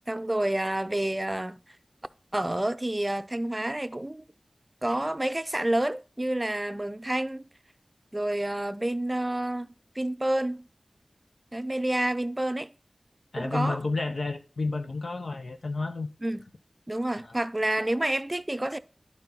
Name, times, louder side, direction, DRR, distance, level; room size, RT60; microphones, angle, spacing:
voice 1, 0.1-1.6 2.3-4.3 4.8-7.5 8.1-9.7 10.0-10.7 11.5-12.7 13.4-13.8 16.2-16.4 16.9-18.8, right 1 dB, 25° right, 0.5 m, -29 dB
voice 2, 13.3-16.1, left 3 dB, 75° left, 0.9 m, -30 dB
11.0 x 4.4 x 3.9 m
wide cardioid pair, 65°, 0 cm